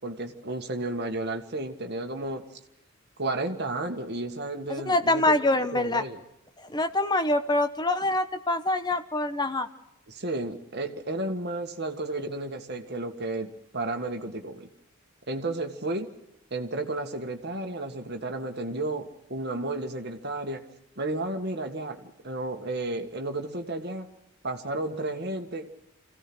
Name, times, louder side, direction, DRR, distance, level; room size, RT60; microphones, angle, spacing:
voice 1, 0.0-2.4 3.2-5.4 5.7-6.2 10.1-14.7 15.3-16.1 16.5-20.6 21.0-24.1 24.4-25.7, right 2 dB, 45° right, 5 dB, 1.9 m, -32 dB
voice 2, 4.7-6.0 6.7-9.7, left 2 dB, 20° left, 8 dB, 1.1 m, -25 dB
26.0 x 16.5 x 6.3 m, 0.86 s
head